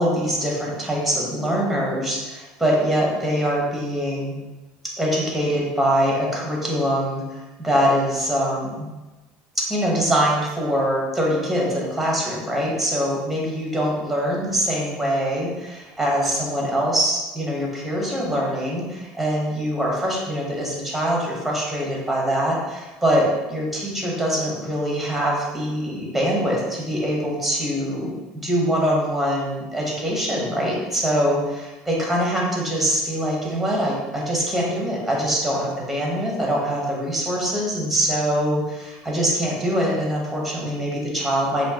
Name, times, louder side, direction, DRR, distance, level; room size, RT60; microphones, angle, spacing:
voice 1, 0.0-4.4 5.0-7.2 7.6-8.9 9.6-41.7, equal, ahead, -3 dB, 1.2 m, -23 dB
6.2 x 2.7 x 3.0 m, 1.1 s
cardioid pair, 145°, 3 cm